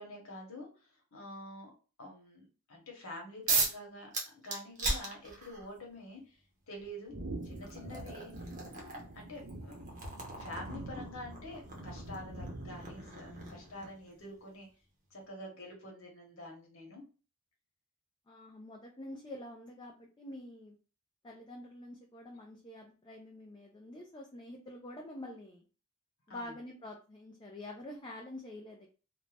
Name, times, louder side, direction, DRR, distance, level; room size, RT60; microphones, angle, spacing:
voice 1, 0.0-1.7 2.0-6.4 6.7-7.1 7.4-10.0 10.4-14.7 15.1-17.0 26.3-26.6, left 1 dB, 80° left, 0 dB, 1.0 m, -47 dB
sound 1, 3.5-3.8 4.1-5.7 6.8-6.9 7.4-14.1, right 3 dB, 35° right, 0.7 m, -37 dB
sound 2, 7.1-13.9, right 2 dB, 75° right, 0.7 m, -45 dB
voice 2, 18.3-20.8 21.2-25.6 26.3-28.9, left 1 dB, 20° left, 0 dB, 0.4 m, -47 dB
2.6 x 2.1 x 3.2 m, 0.35 s
head